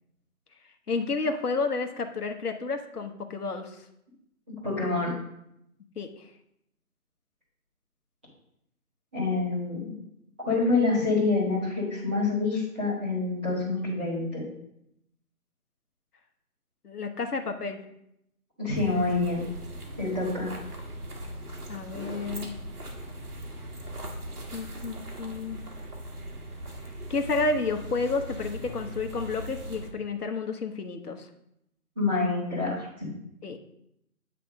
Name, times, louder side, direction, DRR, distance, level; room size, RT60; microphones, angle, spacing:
voice 1, 0.9-3.8 6.0-6.3 16.8-17.8 21.7-22.5 24.5-25.6 27.1-31.3 33.4-33.6, left 3 dB, 85° left, 5 dB, 1.1 m, -31 dB
voice 2, 4.6-5.1 9.1-9.9 10.4-14.4 18.6-19.5 20.0-20.5 31.9-32.9, left 3 dB, 5° right, -14 dB, 1.4 m, -26 dB
sound 1, 18.8-29.9, right 1 dB, 80° right, 1.7 m, -39 dB
9.3 x 3.4 x 5.1 m, 0.79 s
figure-of-eight pair, 175°, 45 cm